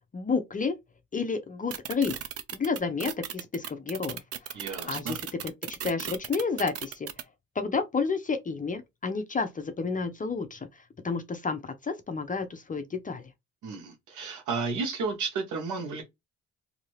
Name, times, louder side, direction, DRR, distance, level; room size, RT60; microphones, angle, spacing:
voice 1, 0.1-0.7 1.1-2.1 2.5-4.5 4.8-7.1 7.6-10.6 11.0-13.2, left 4 dB, 25° left, 0.6 m, -30 dB
sound 1, 1.7-7.2, right 9 dB, 50° right, 0.6 m, -36 dB
voice 2, 4.5-5.2 13.6-16.0, right 4 dB, 80° right, 1.2 m, -32 dB
2.8 x 2.7 x 3.1 m
cardioid pair, 90°, 30 cm